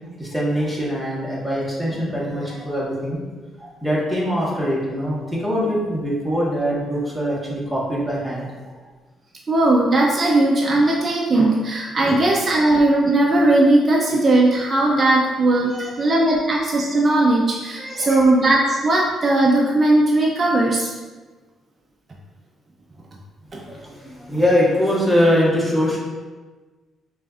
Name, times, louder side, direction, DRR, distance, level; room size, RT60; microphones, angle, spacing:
voice 1, 0.2-3.2 3.6-8.5 12.0-12.2 15.6-16.2 17.8-18.2 23.6-26.0, equal, ahead, -7 dB, 1.3 m, -23 dB
voice 2, 9.5-20.9, right 2 dB, 35° right, -2 dB, 0.5 m, -18 dB
5.5 x 2.5 x 2.4 m, 1.3 s
cardioid pair, 90°, 0 cm